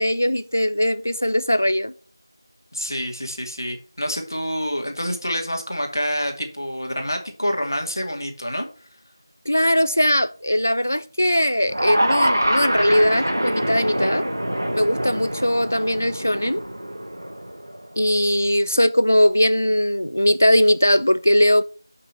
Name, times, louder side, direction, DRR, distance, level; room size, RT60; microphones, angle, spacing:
voice 1, 0.0-1.9 9.5-14.3 14.7-16.6 18.0-21.6, equal, 30° left, 0.4 m, -20 dB
voice 2, 2.7-8.6, equal, 50° left, 2.3 m, -27 dB
sound 1, 11.7-17.9, equal, 35° right, 1.1 m, -25 dB
7.3 x 5.9 x 5.5 m
figure-of-eight pair, 175°, 2 cm